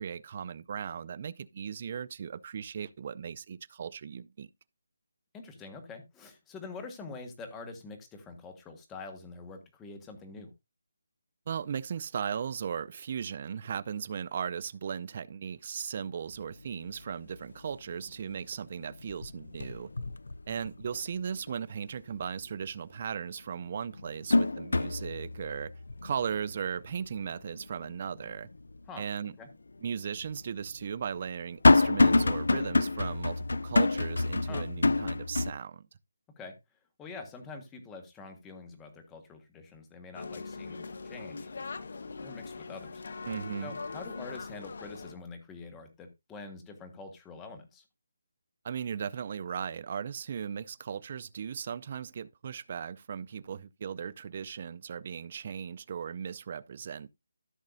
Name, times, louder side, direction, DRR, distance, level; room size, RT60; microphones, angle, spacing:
voice 1, 0.0-4.5 11.5-19.9 20.5-25.7 26.0-28.5 29.0-29.3 29.8-35.9 43.3-43.7 48.6-57.1, right 7 dB, 35° right, 0.4 m, -37 dB
voice 2, 5.3-10.5 28.9-29.0 29.4-29.5 34.5-34.7 36.4-36.5 37.0-41.5 42.2-43.0 43.6-47.8, left 3 dB, 10° left, 1.4 m, -45 dB
sound 1, 16.3-16.4 16.8-17.4 17.7-18.5 18.8-21.1 21.5-21.6 23.0-23.1 23.6-28.8 29.2-29.3 30.2-35.5, left 2 dB, 80° left, 0.5 m, -27 dB
sound 2, 40.1-45.1, left 4 dB, 55° left, 1.1 m, -41 dB
14.5 x 6.5 x 2.6 m
hypercardioid pair, 170°, 0 cm